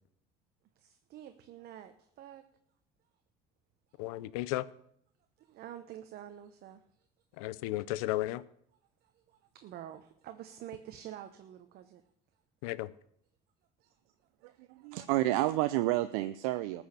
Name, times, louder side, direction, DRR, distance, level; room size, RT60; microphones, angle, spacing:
voice 1, 0.7-2.5 3.9-4.0 5.4-7.1 9.0-12.0 13.8-14.0 14.4-14.9, right 11 dB, 65° right, 8 dB, 1.0 m, -48 dB
voice 2, 4.0-4.7 7.4-8.4 12.6-12.9, left 17 dB, 85° left, 19 dB, 0.6 m, -34 dB
voice 3, 14.4-16.8, right 16 dB, 85° right, 12 dB, 0.6 m, -30 dB
14.5 x 6.3 x 8.3 m, 0.68 s
supercardioid pair, 85°, 18 cm